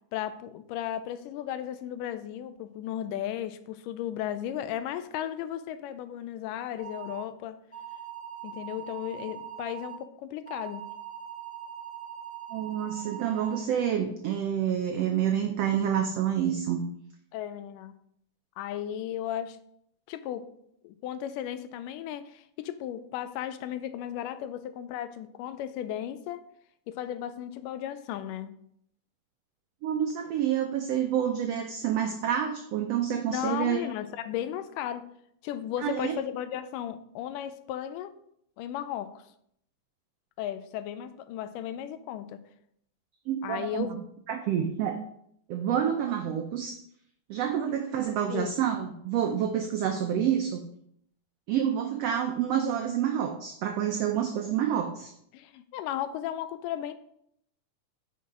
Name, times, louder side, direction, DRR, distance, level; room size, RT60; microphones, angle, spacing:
voice 1, 0.1-7.6 8.4-10.8 17.3-18.0 18.6-19.6 20.1-20.5 20.8-26.4 26.9-28.5 33.3-35.1 35.4-38.1 38.6-39.2 40.4-42.4 43.4-44.0 48.3-48.5 55.3-56.9, left 11 dB, 90° left, 11 dB, 2.2 m, -35 dB
sound 1, 6.8-7.2 7.7-10.0 10.4-13.6, right 9 dB, 5° left, 0.8 m, -41 dB
voice 2, 12.5-16.8 29.8-33.9 35.8-36.1 43.3-44.0 44.3-45.0 45.5-46.8 47.3-50.6 51.5-55.1, right 9 dB, 85° right, 4 dB, 1.4 m, -28 dB
9.4 x 5.8 x 3.8 m, 0.70 s
omnidirectional pair, 3.7 m